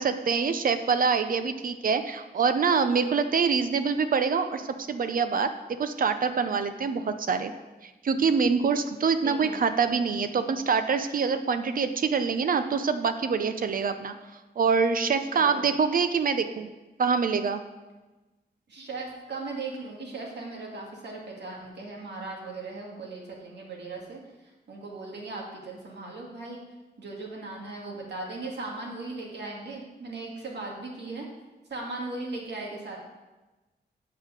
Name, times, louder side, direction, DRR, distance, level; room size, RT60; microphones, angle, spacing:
voice 1, 0.0-7.5 7.8-14.1 14.6-16.7 17.0-17.6, right 5 dB, 50° right, 9 dB, 0.6 m, -25 dB
voice 2, 9.2-9.6 15.3-15.7 18.7-24.2 24.7-26.6 27.0-31.3 31.7-33.0, right 3 dB, 75° right, -2 dB, 2.3 m, -38 dB
8.4 x 5.6 x 6.5 m, 1.1 s
wide cardioid pair, 150°, 18 cm